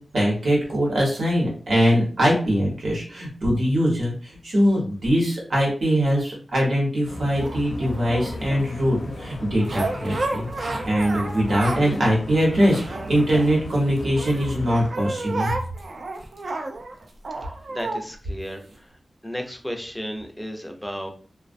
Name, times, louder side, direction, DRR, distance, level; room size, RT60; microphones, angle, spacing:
voice 1, 0.1-15.5, equal, 85° right, -3 dB, 1.0 m, -22 dB
sound 1, 7.1-14.9, left 1 dB, 85° left, 0.6 m, -36 dB
sound 2, 7.3-8.7 9.6-12.0 12.3-13.8 14.2-18.0 18.7-18.8, right 2 dB, 60° right, 0.4 m, -31 dB
voice 2, 17.4-21.1, equal, 5° left, 3 dB, 0.4 m, -34 dB
2.3 x 2.1 x 2.5 m, 0.41 s
wide cardioid pair, 115°, 0 cm